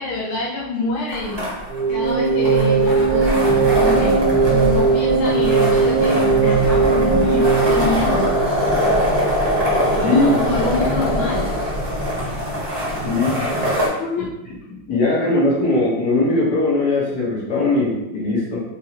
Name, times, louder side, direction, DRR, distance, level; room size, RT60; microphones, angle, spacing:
voice 1, 0.0-1.5 1.9-8.3 9.9-11.5 13.9-14.3, left 2 dB, 80° left, -5 dB, 1.7 m, -26 dB
sound 1, 1.1-13.9, equal, 15° right, 0.9 m, -22 dB
sound 2, 1.7-8.9, right 4 dB, 85° right, 1.8 m, -18 dB
voice 2, 13.0-13.4 14.9-18.6, left 2 dB, 50° left, -6 dB, 1.7 m, -19 dB
4.5 x 3.5 x 3.0 m, 0.92 s
omnidirectional pair, 2.3 m